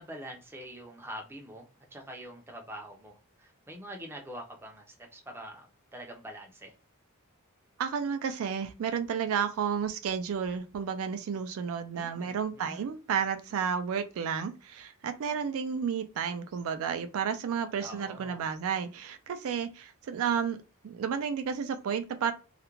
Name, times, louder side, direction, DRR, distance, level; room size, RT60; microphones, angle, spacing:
voice 1, 0.0-3.1 3.4-6.7 11.9-12.8 17.8-18.5, equal, 10° right, 0.5 m, -45 dB
voice 2, 7.8-20.6 20.8-22.3, right 7 dB, 65° right, 0.3 m, -32 dB
2.4 x 2.1 x 2.9 m
head